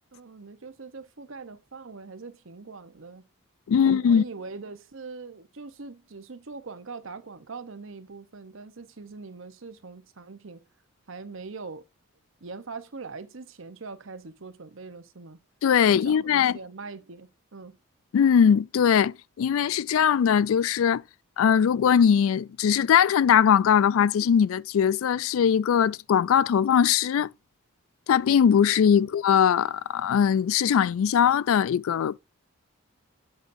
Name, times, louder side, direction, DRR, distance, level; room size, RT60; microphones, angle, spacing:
voice 1, 0.1-3.3 3.7-10.7 11.1-11.8 12.4-15.4 15.8-17.8 28.9-29.1, right 4 dB, 65° right, 0.9 m, -42 dB
voice 2, 3.7-4.2 15.6-16.6 18.1-21.0 21.4-27.3 28.1-32.2, left 8 dB, 75° left, 0.3 m, -21 dB
8.2 x 8.0 x 2.6 m
head